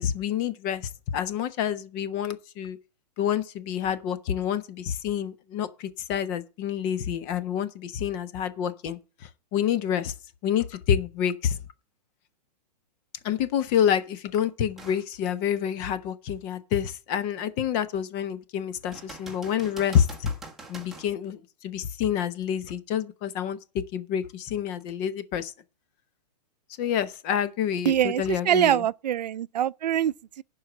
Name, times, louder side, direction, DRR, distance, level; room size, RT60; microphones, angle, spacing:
voice 1, 0.0-2.8 3.2-10.1 10.4-11.6 13.2-20.3 20.7-25.5 26.8-28.8, left 9 dB, 25° left, 0.9 m, -28 dB
sound 1, 14.8-15.1 15.6-15.7 18.9-21.1 24.8-24.9, right 3 dB, ahead, 1.5 m, -44 dB
voice 2, 27.9-30.4, right 11 dB, 80° right, 0.5 m, -24 dB
11.0 x 4.8 x 7.6 m
hypercardioid pair, 165°, 21 cm